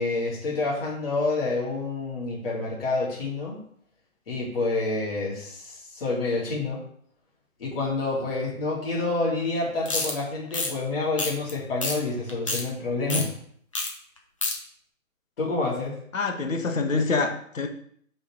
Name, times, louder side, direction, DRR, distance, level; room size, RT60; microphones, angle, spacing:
voice 1, 0.0-3.6 4.3-6.8 7.6-13.3 15.4-15.9, left 3 dB, 40° left, -5 dB, 3.1 m, -28 dB
sound 1, 9.9-10.1 10.5-10.7 11.2-11.5 11.8-12.0 12.3-12.6 13.1-13.2 13.7-13.9 14.2-14.5, left 3 dB, 25° left, 0.8 m, -27 dB
voice 2, 16.1-17.7, left 4 dB, 65° left, 5 dB, 1.5 m, -26 dB
6.3 x 5.2 x 4.8 m, 0.62 s
hypercardioid pair, 170°, 43 cm